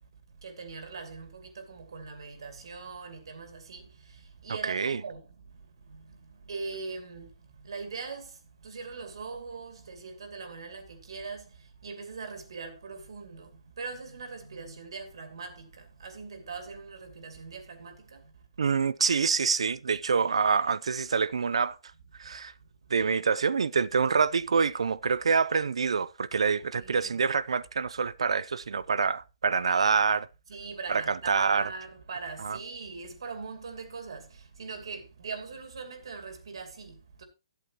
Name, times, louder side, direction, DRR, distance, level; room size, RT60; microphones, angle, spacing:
voice 1, 0.4-3.8 4.4-5.2 6.5-7.3 7.6-8.3 8.6-11.5 11.8-13.5 13.8-15.7 16.0-18.2 24.1-24.5 26.6-27.2 30.5-34.3 34.6-37.2, right 4 dB, 60° right, 2.6 m, -41 dB
voice 2, 4.6-5.0 18.6-21.8 22.2-22.5 22.9-30.3 30.9-31.7 32.4-32.6, right 5 dB, 80° right, 0.6 m, -26 dB
13.5 x 8.1 x 2.9 m
hypercardioid pair, 175°, 3 cm